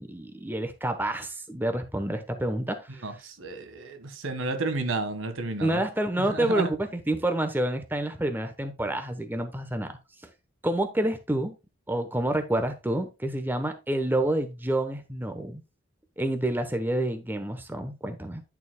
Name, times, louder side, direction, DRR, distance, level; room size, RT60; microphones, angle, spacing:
voice 1, 0.0-3.0 5.6-10.0 10.6-11.5 11.9-15.6 16.2-18.4, right 1 dB, 10° right, 0.9 m, -28 dB
voice 2, 3.0-5.8 6.2-6.7, right 3 dB, 70° right, 1.6 m, -31 dB
10.5 x 7.0 x 2.2 m
head